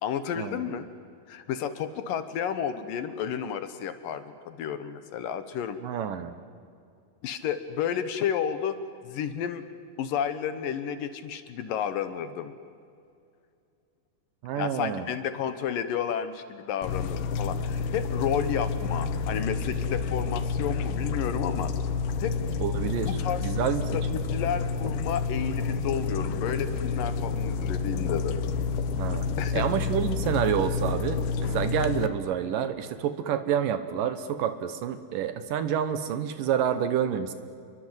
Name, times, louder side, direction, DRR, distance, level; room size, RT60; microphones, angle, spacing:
voice 1, 0.0-0.9 1.3-5.8 7.2-8.8 9.0-9.6 10.0-12.5 14.5-21.7 22.2-22.3 23.0-23.6 23.9-28.4 29.4-29.6, left 8 dB, 70° left, 11 dB, 2.5 m, -31 dB
voice 2, 5.8-6.3 14.4-15.1 22.6-23.1 23.4-23.8 29.0-29.3 29.5-37.3, right 9 dB, 70° right, 11 dB, 2.5 m, -28 dB
sound 1, 16.8-32.1, left 5 dB, 90° left, 3.0 m, -29 dB
29.0 x 22.5 x 8.0 m, 2.4 s
omnidirectional pair, 4.5 m